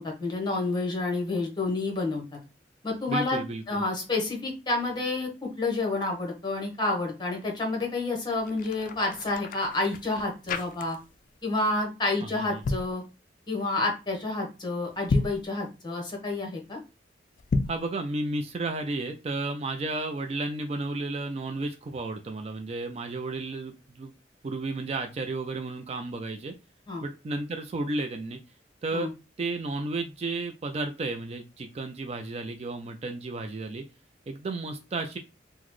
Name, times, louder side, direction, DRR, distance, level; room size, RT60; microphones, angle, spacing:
voice 1, 0.0-2.2 2.8-3.4 3.7-11.0 11.4-13.0 13.5-16.8 26.9-27.0 28.9-29.1, left 2 dB, 25° left, 0 dB, 1.0 m, -29 dB
voice 2, 3.1-3.8 12.2-12.6 17.7-24.1 24.4-26.5 27.0-28.4 28.8-29.1 29.4-33.8 34.3-35.2, right 2 dB, 35° right, 6 dB, 0.3 m, -33 dB
sound 1, 8.3-11.3 11.5-11.8 12.4-12.9 14.9-15.5 17.4-17.9, left 3 dB, 50° left, 0.3 m, -31 dB
3.9 x 2.1 x 3.0 m, 0.28 s
head